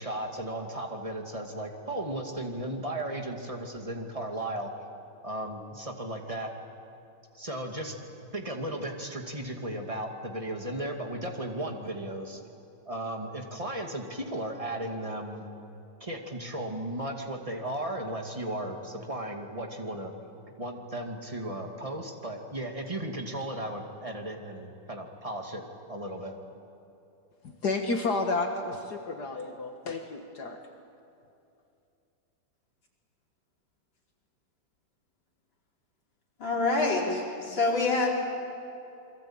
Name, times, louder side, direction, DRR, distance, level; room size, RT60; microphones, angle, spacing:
voice 1, 0.0-4.7 5.2-6.5 7.3-7.9 8.3-12.4 12.9-15.4 16.0-20.1 20.6-25.6 25.9-26.3, right 1 dB, 15° right, 3 dB, 2.4 m, -35 dB
voice 2, 27.4-30.6, left 3 dB, 60° left, 4 dB, 2.0 m, -31 dB
voice 3, 36.4-38.1, left 3 dB, 85° left, -3 dB, 5.6 m, -26 dB
28.5 x 22.5 x 8.9 m, 2.7 s
omnidirectional pair, 2.0 m